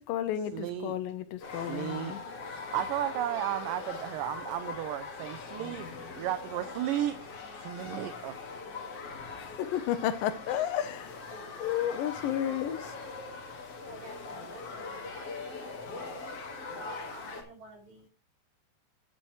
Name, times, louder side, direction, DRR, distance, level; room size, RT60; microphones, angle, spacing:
voice 1, 0.0-2.2 9.3-13.0, left 10 dB, 85° left, 2.3 m, -32 dB
voice 2, 0.5-0.9 1.7-2.2 2.5-5.9 6.2-7.2 7.6-8.4, right 12 dB, 80° right, 2.3 m, -34 dB
sound 1, 1.4-17.4, left 4 dB, 50° left, 2.6 m, -41 dB
voice 3, 13.7-18.1, right 3 dB, 55° right, 5.0 m, -52 dB
10.0 x 10.0 x 3.1 m
omnidirectional pair, 3.9 m